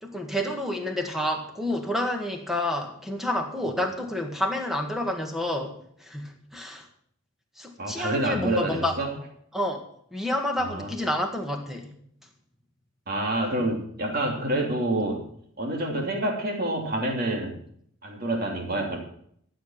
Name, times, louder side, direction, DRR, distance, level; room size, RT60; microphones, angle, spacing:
voice 1, 0.0-6.9 7.6-8.9 9.5-9.8 10.1-12.0, left 1 dB, ahead, 3 dB, 1.9 m, -29 dB
voice 2, 7.8-9.1 10.6-10.9 13.1-15.2 15.6-17.6 18.0-19.0, right 1 dB, 45° right, 1 dB, 2.9 m, -27 dB
13.0 x 7.8 x 7.3 m, 0.66 s
head